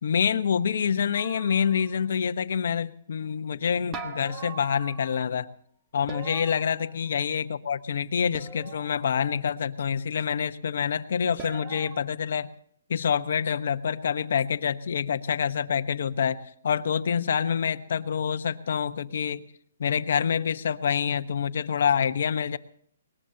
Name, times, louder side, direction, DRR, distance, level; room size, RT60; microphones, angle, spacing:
voice 1, 0.0-5.5 5.9-12.5 12.9-19.4 19.8-22.6, left 7 dB, 60° left, 10 dB, 1.1 m, -27 dB
sound 1, 1.1-2.1 3.9-5.3 6.1-7.4 8.3-9.2 11.4-12.0, right 4 dB, 15° right, 1.4 m, -41 dB
22.5 x 20.0 x 2.9 m, 0.62 s
hypercardioid pair, 165°, 0 cm